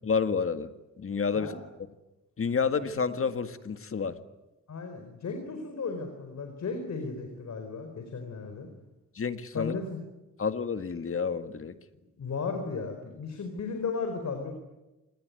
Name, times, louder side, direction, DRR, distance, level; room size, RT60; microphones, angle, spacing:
voice 1, 0.0-0.7 1.0-1.5 2.4-4.2 9.2-9.7 10.4-11.8, left 5 dB, 45° left, 10 dB, 1.8 m, -29 dB
voice 2, 4.7-8.7 9.5-10.0 12.2-14.5, left 4 dB, 65° left, 5 dB, 4.6 m, -35 dB
27.5 x 20.5 x 9.5 m, 1.0 s
cardioid pair, 95°, 30 cm